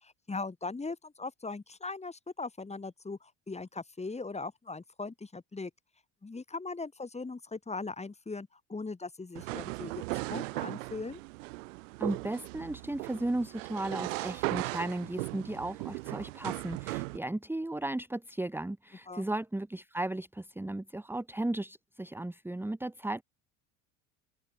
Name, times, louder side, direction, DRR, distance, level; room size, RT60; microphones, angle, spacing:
voice 1, 0.0-5.7 6.2-11.2 19.1-19.3, left 3 dB, 15° left, 3.0 m, -39 dB
sound 1, 9.4-17.2, right 23 dB, 85° right, 1.3 m, -37 dB
voice 2, 12.0-23.2, right 1 dB, 5° right, 1.4 m, -35 dB
open air
supercardioid pair, 80°, 38 cm